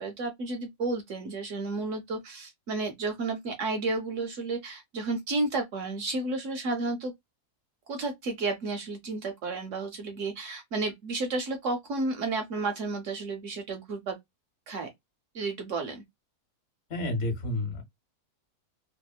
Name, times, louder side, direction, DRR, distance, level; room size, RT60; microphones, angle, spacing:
voice 1, 0.0-7.1 7.9-14.2 14.7-14.9 15.3-16.0, right 3 dB, 65° right, 0.8 m, -32 dB
voice 2, 16.9-17.8, left 1 dB, 50° left, 1.2 m, -30 dB
2.8 x 2.1 x 2.3 m
omnidirectional pair, 1.7 m